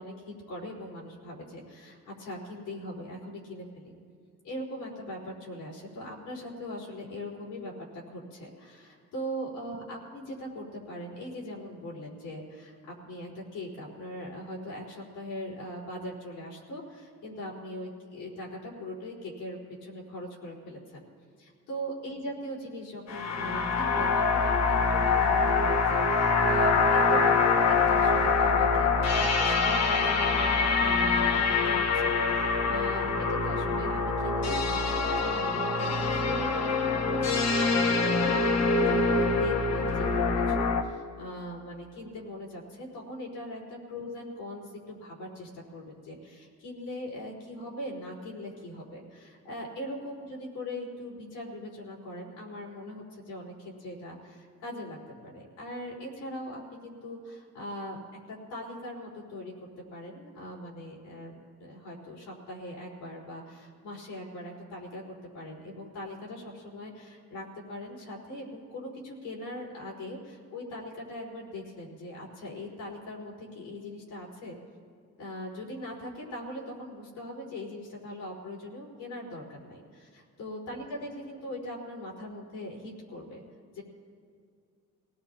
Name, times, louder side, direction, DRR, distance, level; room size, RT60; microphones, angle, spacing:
voice 1, 0.0-3.9 4.4-21.1 21.4-55.0 55.2-58.0 58.3-74.6 75.2-83.4 83.7-83.8, left 1 dB, 85° left, -5 dB, 4.3 m, -40 dB
sound 1, 23.1-40.8, left 4 dB, 60° left, 1.4 m, -25 dB
23.5 x 18.0 x 2.9 m, 2.2 s
cardioid pair, 90°, 30 cm